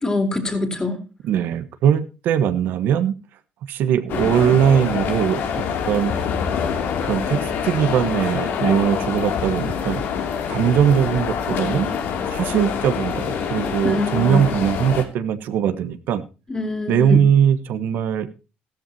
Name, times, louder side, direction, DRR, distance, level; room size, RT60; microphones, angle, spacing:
voice 1, 0.0-1.0 13.8-14.5 16.5-17.2, left 2 dB, 20° left, 5 dB, 3.7 m, -24 dB
voice 2, 1.2-3.2 3.7-6.1 7.0-10.0 10.5-11.9 12.3-16.3 16.9-18.3, right 9 dB, 70° right, 10 dB, 1.3 m, -20 dB
sound 1, 4.1-15.0, left 7 dB, 70° left, 2.8 m, -25 dB
14.5 x 13.5 x 2.9 m, 0.32 s
cardioid pair, 100°, 3 cm